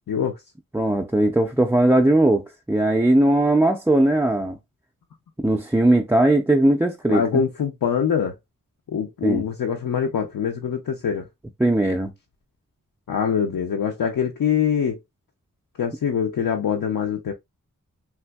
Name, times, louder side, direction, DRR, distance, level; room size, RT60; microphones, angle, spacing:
voice 1, 0.1-0.4 7.1-8.4 8.9-11.3 13.1-15.0 15.8-17.3, left 7 dB, 75° left, 0.5 m, -24 dB
voice 2, 0.7-4.6 5.4-7.4 9.2-9.4 11.6-12.1, right 1 dB, 5° right, 0.3 m, -19 dB
3.4 x 2.6 x 2.2 m
wide cardioid pair, 70°, 34 cm